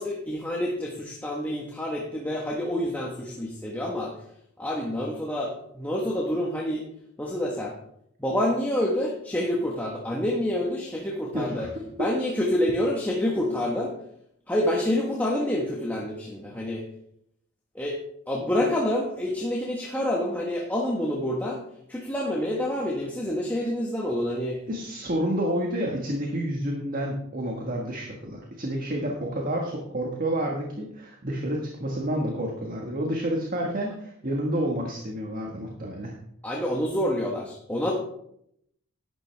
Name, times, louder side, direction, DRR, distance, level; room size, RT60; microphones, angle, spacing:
voice 1, 0.0-4.1 4.6-6.9 7.2-7.7 8.2-11.7 12.0-13.9 14.5-16.8 17.7-18.0 18.3-21.6 21.9-24.6 36.4-37.9, left 1 dB, 10° left, -2 dB, 1.3 m, -27 dB
voice 2, 11.3-11.7 12.0-12.1 24.7-36.1, right 1 dB, 40° right, 0 dB, 1.6 m, -29 dB
11.5 x 10.0 x 3.5 m, 0.72 s
head